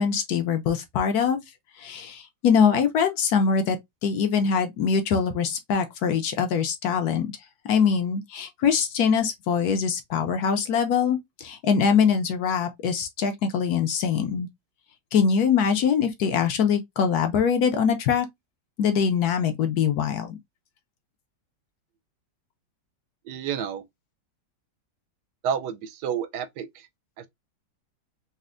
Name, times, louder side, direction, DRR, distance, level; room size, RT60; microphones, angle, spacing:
voice 1, 0.0-1.4 1.8-3.8 4.0-7.3 7.6-14.5 15.1-18.3 18.8-20.4, left 6 dB, 70° left, 1.0 m, -23 dB
voice 2, 23.2-23.8 25.4-26.9 27.2-27.3, right 8 dB, 75° right, 1.1 m, -30 dB
4.2 x 2.0 x 2.4 m
omnidirectional pair, 1.9 m